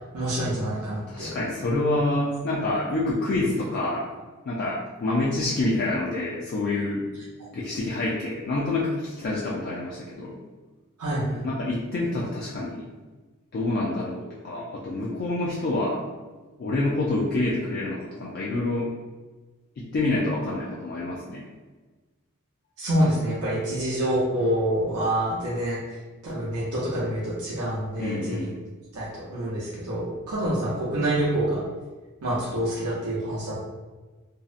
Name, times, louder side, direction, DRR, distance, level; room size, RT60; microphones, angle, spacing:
voice 1, 0.1-1.3 11.0-11.4 22.8-26.0 26.2-28.5 28.9-31.6 32.2-33.6, right 1 dB, 80° right, -7 dB, 0.6 m, -27 dB
voice 2, 1.1-4.1 4.5-7.0 7.5-10.4 11.4-12.9 13.5-16.0 16.6-18.9 19.8-21.4 28.0-28.6, left 2 dB, 45° left, -5 dB, 0.3 m, -27 dB
2.6 x 2.0 x 2.4 m, 1.3 s
head